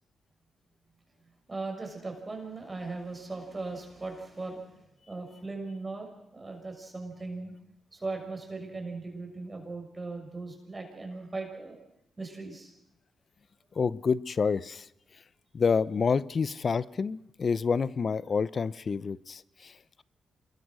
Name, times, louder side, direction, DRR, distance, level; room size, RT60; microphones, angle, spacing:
voice 1, 1.5-4.6 5.1-7.5 7.9-11.8 12.2-12.7, right 3 dB, 25° right, 2 dB, 6.5 m, -38 dB
voice 2, 13.7-14.9 15.5-20.0, left 5 dB, 50° left, 19 dB, 0.8 m, -28 dB
27.0 x 21.5 x 6.3 m, 0.82 s
cardioid pair, 70°, 0 cm